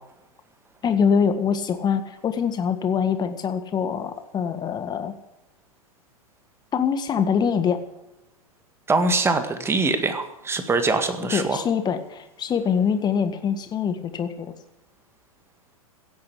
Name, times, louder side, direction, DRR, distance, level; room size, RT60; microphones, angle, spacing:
voice 1, 0.8-5.1 6.7-7.8 11.3-14.5, left 7 dB, 20° left, 8 dB, 1.7 m, -24 dB
voice 2, 8.9-11.6, right 3 dB, 15° right, 8 dB, 1.8 m, -23 dB
16.0 x 8.6 x 8.3 m, 0.92 s
hypercardioid pair, 105°, 19 cm